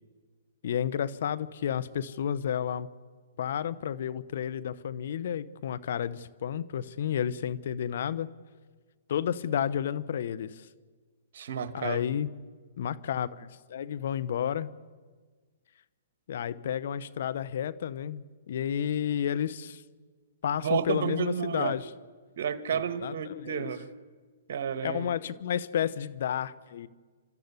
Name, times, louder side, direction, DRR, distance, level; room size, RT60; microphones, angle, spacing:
voice 1, 0.6-2.9 3.4-8.3 9.1-10.7 11.7-12.3 12.8-14.7 16.3-19.8 20.4-21.8 22.7-23.7 24.8-26.9, left 9 dB, 65° left, 1.0 m, -31 dB
voice 2, 11.3-12.0 20.6-21.8 22.4-23.9 24.5-25.1, right 7 dB, 65° right, 1.7 m, -31 dB
29.5 x 13.5 x 9.7 m
hypercardioid pair, 135°, 0 cm